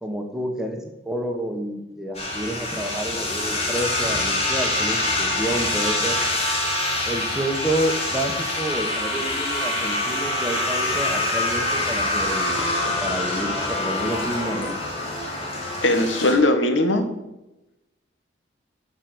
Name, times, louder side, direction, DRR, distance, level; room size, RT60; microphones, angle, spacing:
voice 1, 0.0-6.2 7.1-14.8, right 1 dB, 5° right, 3 dB, 1.3 m, -29 dB
sound 1, 2.1-16.3, left 2 dB, 30° left, 3.7 m, -25 dB
voice 2, 15.8-17.0, left 1 dB, 80° left, 6 dB, 1.6 m, -19 dB
11.5 x 5.3 x 7.9 m, 0.95 s
head